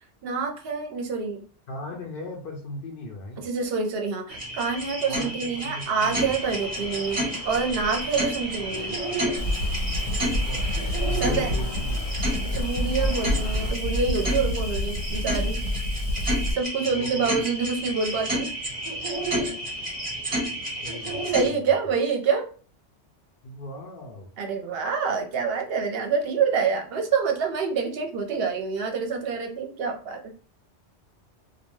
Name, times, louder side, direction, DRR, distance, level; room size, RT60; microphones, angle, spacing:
voice 1, 0.2-1.4 3.4-9.0 11.1-11.6 12.5-15.6 16.5-18.5 21.3-22.5 24.4-30.3, right 5 dB, 60° right, 3 dB, 0.8 m, -27 dB
voice 2, 1.7-3.5 5.1-6.3 10.0-10.7 11.1-12.0 16.9-17.4 20.8-21.7 23.4-24.3, left 1 dB, 60° left, 0 dB, 0.7 m, -38 dB
sound 1, 4.3-21.5, right 1 dB, 30° right, 1.0 m, -31 dB
sound 2, 6.0-13.7, left 1 dB, 35° left, 0.3 m, -42 dB
Fire, 9.4-16.5, left 1 dB, 75° left, 1.2 m, -27 dB
2.5 x 2.2 x 3.0 m, 0.40 s
omnidirectional pair, 1.2 m